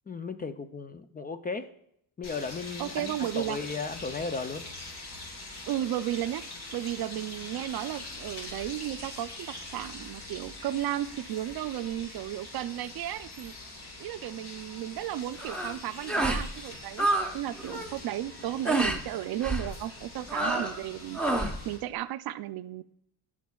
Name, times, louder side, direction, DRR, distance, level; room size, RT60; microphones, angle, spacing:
voice 1, 0.1-1.7 2.2-4.6, left 4 dB, 25° left, 10 dB, 0.4 m, -35 dB
sound 1, 2.2-21.8, left 2 dB, 75° left, 3.2 m, -44 dB
voice 2, 2.8-3.6 5.7-6.4 6.7-13.5 14.0-17.1 17.3-22.8, right 13 dB, 65° right, 13 dB, 0.5 m, -34 dB
sound 2, 15.4-15.7 16.1-16.5 16.7-17.3 17.6-17.9 18.6-19.0 19.4-19.7 20.3-20.8 21.1-21.6, right 2 dB, 5° left, 0.8 m, -28 dB
13.5 x 5.9 x 2.3 m, 0.73 s
cardioid pair, 135°, 39 cm